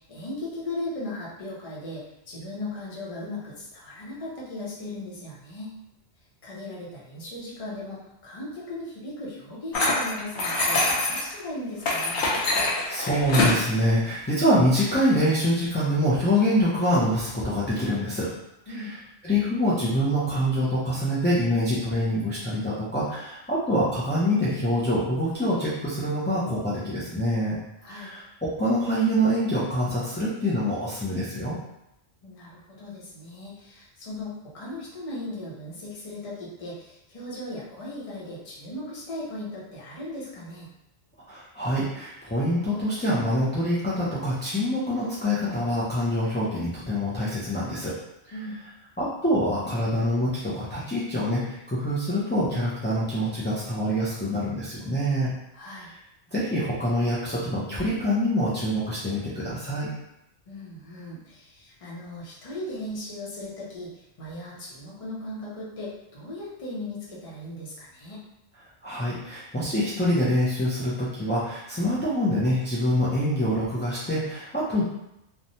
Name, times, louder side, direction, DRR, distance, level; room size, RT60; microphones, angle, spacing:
voice 1, 0.0-5.8 6.4-12.2 18.7-18.9 27.8-28.1 32.2-40.7 48.3-48.6 55.5-55.9 60.5-63.9 64.2-68.2, left 1 dB, 35° left, -6 dB, 0.8 m, -37 dB
sound 1, 9.7-11.3 11.8-13.6, left 2 dB, 85° left, 1.0 m, -24 dB
voice 2, 12.7-18.3 19.2-27.6 27.9-31.6 41.3-48.0 49.0-55.3 56.3-59.9 68.8-74.8, equal, 15° left, -10 dB, 0.4 m, -25 dB
3.0 x 2.2 x 2.6 m, 0.85 s
omnidirectional pair, 1.1 m